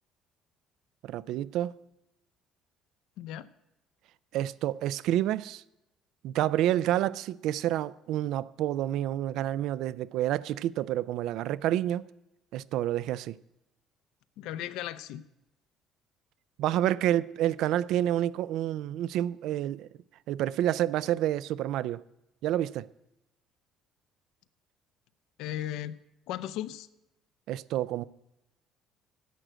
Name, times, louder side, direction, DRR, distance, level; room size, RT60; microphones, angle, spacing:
voice 1, 1.0-1.8 4.3-5.6 6.2-12.0 12.5-13.4 16.6-19.9 20.3-22.0 22.4-22.9 27.5-28.0, right 12 dB, 65° right, 0.3 m, -29 dB
voice 2, 3.2-3.5 14.4-15.2 25.4-25.9 26.3-26.9, left 12 dB, 75° left, 0.6 m, -36 dB
11.0 x 7.5 x 7.9 m
cardioid pair, 170°, 0 cm